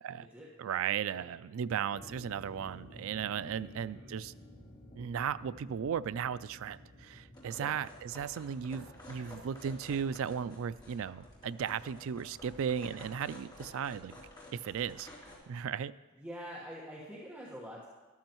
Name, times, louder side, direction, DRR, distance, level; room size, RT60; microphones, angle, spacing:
voice 1, 0.6-4.3 5.0-14.1 14.5-15.1 15.5-15.9, right 8 dB, 60° right, 16 dB, 0.3 m, -36 dB
sound 1, 1.9-13.1, left 1 dB, 40° left, 2.7 m, -55 dB
voice 2, 3.6-4.1 7.6-7.7 16.2-17.9, equal, 10° right, -6 dB, 1.3 m, -46 dB
sound 2, 7.3-15.3, left 1 dB, 20° left, 3.0 m, -52 dB
13.0 x 12.5 x 3.0 m, 1.2 s
head